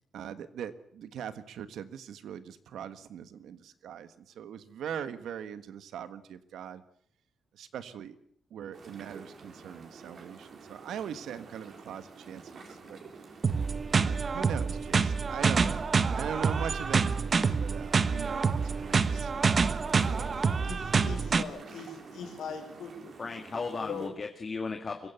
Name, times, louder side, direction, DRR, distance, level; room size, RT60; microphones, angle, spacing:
voice 1, 0.1-6.8 7.5-8.1 8.5-13.0 13.9-17.2 17.6-18.4 18.8-20.3, right 8 dB, 85° right, 12 dB, 1.6 m, -41 dB
sound 1, 8.7-24.1, right 4 dB, 55° right, 4.5 m, -49 dB
sound 2, 13.4-21.4, right 5 dB, 40° right, 1.1 m, -27 dB
voice 2, 20.1-23.1 23.7-24.1, left 5 dB, 85° left, 5 dB, 4.8 m, -41 dB
voice 3, 23.2-25.1, left 4 dB, 35° left, 3 dB, 2.0 m, -35 dB
23.5 x 16.0 x 8.2 m, 0.65 s
cardioid pair, 115°, 0 cm